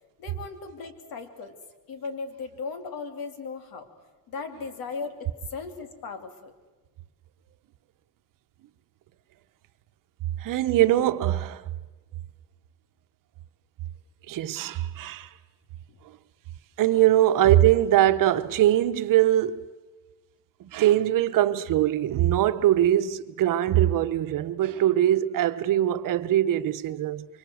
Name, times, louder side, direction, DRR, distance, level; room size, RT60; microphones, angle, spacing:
voice 1, 0.2-1.6 1.9-3.9 4.3-6.5 15.9-16.0 16.9-17.1, left 4 dB, 70° left, 2.9 m, -37 dB
voice 2, 10.4-11.6 14.3-15.3 16.8-19.7 20.6-27.3, right 12 dB, 60° right, 1.1 m, -22 dB
25.5 x 24.0 x 7.8 m
cardioid pair, 140°, 37 cm